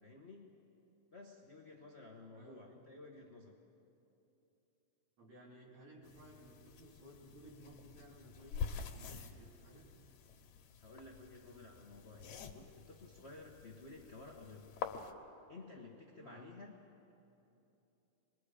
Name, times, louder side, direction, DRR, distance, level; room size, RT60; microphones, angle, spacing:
voice 1, 0.0-0.6 1.1-3.5 10.8-14.7 15.5-16.7, left 3 dB, 55° left, 0 dB, 0.7 m, -54 dB
voice 2, 2.3-2.6 5.2-9.9 16.2-16.5, right 1 dB, 65° right, -4 dB, 4.9 m, -57 dB
sound 1, 6.0-15.1, left 6 dB, 80° left, 2.4 m, -47 dB
28.0 x 22.0 x 5.0 m, 2.9 s
omnidirectional pair, 3.3 m